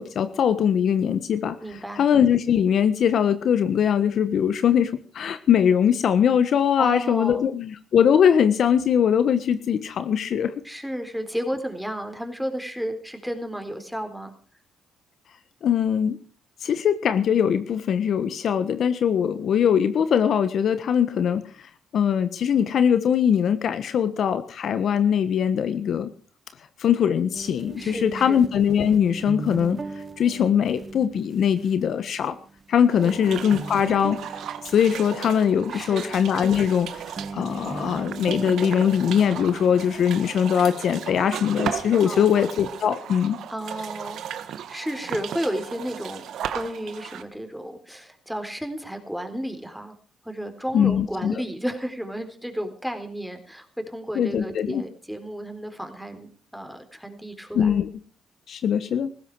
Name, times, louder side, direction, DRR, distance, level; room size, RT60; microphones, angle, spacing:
voice 1, 0.0-1.6 1.9-10.5 15.6-16.2 16.6-21.4 21.9-26.1 26.8-29.8 30.2-32.4 32.7-34.2 34.6-37.0 37.3-43.4 50.7-51.3 54.1-54.8 57.5-57.9 58.5-59.1, left 8 dB, 65° left, 11 dB, 1.3 m, -21 dB
voice 2, 1.6-2.0 6.8-7.5 10.6-14.3 27.8-28.4 33.0-33.3 35.7-36.1 42.0-42.3 43.5-44.4 44.7-46.2 46.5-49.9 50.2-57.8, equal, ahead, 6 dB, 3.9 m, -32 dB
sound 1, 27.3-40.2, right 4 dB, 30° right, 1.4 m, -38 dB
sound 2, 32.9-47.2, right 9 dB, 75° right, 1.6 m, -36 dB
18.5 x 15.5 x 4.7 m, 0.40 s
cardioid pair, 90°, 0 cm